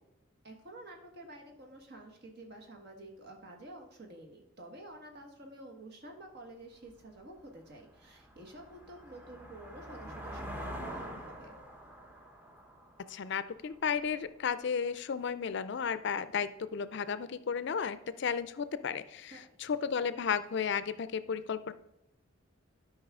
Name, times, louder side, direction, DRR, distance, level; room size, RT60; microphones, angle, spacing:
voice 1, 0.4-11.5 19.3-19.8, right 1 dB, 50° right, 2 dB, 1.6 m, -50 dB
sound 1, 6.9-7.0 7.5-14.1, equal, 10° right, 0.9 m, -46 dB
voice 2, 13.1-19.3 19.6-21.7, left 6 dB, 60° left, 14 dB, 0.4 m, -33 dB
12.0 x 5.4 x 3.6 m, 0.88 s
head